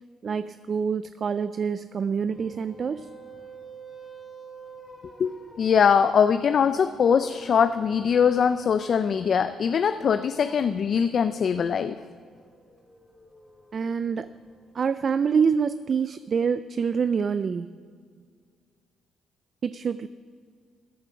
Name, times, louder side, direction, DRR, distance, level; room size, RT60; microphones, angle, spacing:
voice 1, 0.2-3.1 13.7-14.3 14.7-17.7 19.6-20.1, right 6 dB, 45° right, 13 dB, 0.4 m, -26 dB
sound 1, 2.2-15.4, right 4 dB, 20° left, 3.1 m, -50 dB
voice 2, 5.2-12.0, left 7 dB, 55° left, 11 dB, 0.4 m, -22 dB
15.0 x 9.3 x 5.7 m, 2.1 s
cardioid pair, 90°, 0 cm